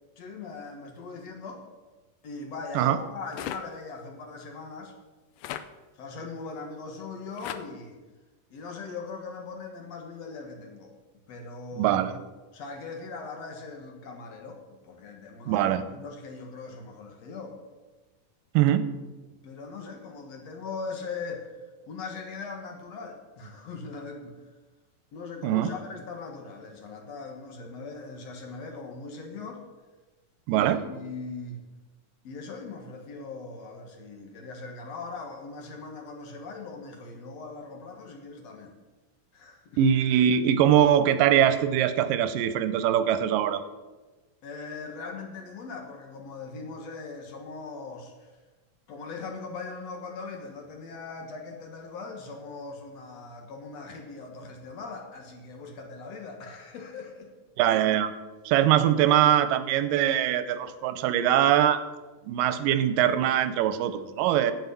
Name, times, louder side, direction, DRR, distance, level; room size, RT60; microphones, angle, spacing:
voice 1, 0.2-1.6 2.2-4.9 5.9-8.0 8.5-10.9 11.3-12.0 12.5-17.6 19.4-21.5 21.8-24.4 25.1-29.6 30.5-31.6 32.2-38.7 39.3-39.8 44.4-48.3 48.9-57.3, left 4 dB, 60° left, 3 dB, 2.3 m, -40 dB
sound 1, 3.3-3.6 5.4-5.6 7.4-7.6, left 11 dB, 85° left, 2.2 m, -35 dB
voice 2, 11.8-12.1 15.5-15.8 18.5-18.9 25.4-25.7 30.5-30.8 39.8-43.6 57.6-58.1 58.5-61.8 62.3-64.5, right 10 dB, 90° right, 12 dB, 2.4 m, -22 dB
9.2 x 8.0 x 8.3 m, 1.2 s
omnidirectional pair, 3.8 m